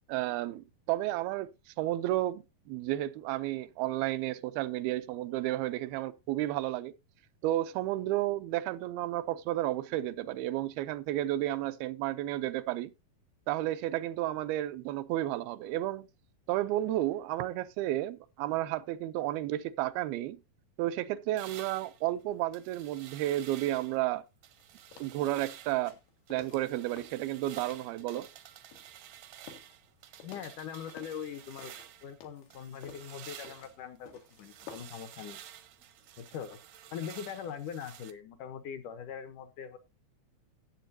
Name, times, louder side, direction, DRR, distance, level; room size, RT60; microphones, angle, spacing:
voice 1, 0.1-1.5 1.8-6.9 7.4-12.9 13.5-16.1 16.5-20.4 20.8-24.2 25.0-25.9 26.3-28.3, right 15 dB, 85° right, 2.6 m, -32 dB
sound 1, 21.4-24.0 24.4-25.9 26.3-32.2 32.5-38.1, right 11 dB, 70° right, 1.7 m, -51 dB
sound 2, 23.7-24.0 24.4-28.4 28.7-31.3 31.6-35.1 35.4-35.5, left 6 dB, 90° left, 3.8 m, -53 dB
voice 2, 30.2-31.7 32.0-34.1 34.4-35.4 36.2-36.6 36.9-39.8, left 8 dB, 70° left, 2.1 m, -41 dB
14.5 x 8.2 x 2.7 m
omnidirectional pair, 4.4 m